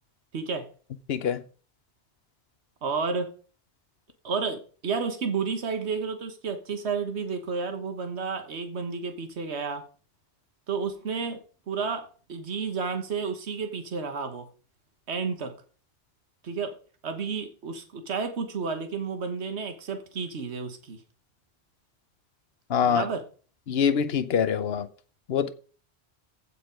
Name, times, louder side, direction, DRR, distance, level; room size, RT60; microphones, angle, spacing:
voice 1, 0.3-0.7 2.8-3.3 4.2-9.8 10.7-14.5 15.1-15.5 16.4-16.7 17.0-21.0 22.8-23.2, right 5 dB, 75° right, 1.5 m, -31 dB
voice 2, 1.1-1.4 22.7-23.0 23.7-24.9 25.3-25.5, left 7 dB, 65° left, 1.0 m, -24 dB
15.5 x 5.2 x 5.1 m
omnidirectional pair, 1.1 m